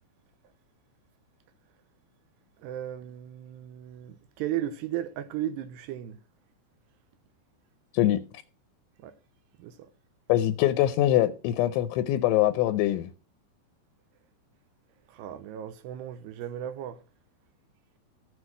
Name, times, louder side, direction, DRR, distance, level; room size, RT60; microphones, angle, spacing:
voice 1, 2.6-6.2 9.0-9.1 9.6-9.7 15.1-17.0, right 11 dB, 80° right, 2.6 m, -35 dB
voice 2, 10.3-13.1, left 13 dB, 85° left, 3.0 m, -23 dB
14.5 x 6.5 x 6.0 m
omnidirectional pair, 5.4 m